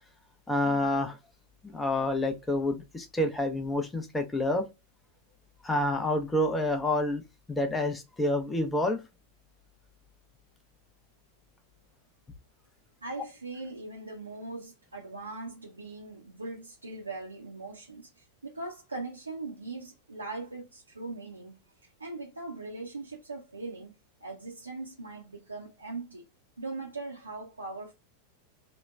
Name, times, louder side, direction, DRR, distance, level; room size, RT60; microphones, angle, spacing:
voice 1, 0.5-1.2 1.6-4.7 5.6-7.2 7.5-9.0, left 1 dB, 10° left, 0.6 m, -28 dB
voice 2, 13.0-21.6 22.0-23.9 24.2-26.3 26.6-27.9, right 3 dB, 80° right, 0.5 m, -40 dB
2.9 x 2.1 x 2.2 m
figure-of-eight pair, 90°, 0 cm